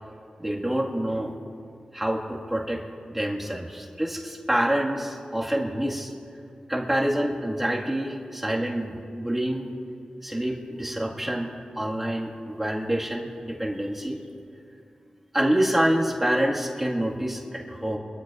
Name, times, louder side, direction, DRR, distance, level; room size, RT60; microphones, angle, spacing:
voice 1, 0.4-1.3 1.9-2.8 3.1-6.1 6.7-9.7 10.2-11.5 11.8-14.2 15.3-18.0, right 1 dB, 10° right, -3 dB, 1.8 m, -27 dB
24.5 x 13.5 x 2.5 m, 2.4 s
wide cardioid pair, 80°, 2 cm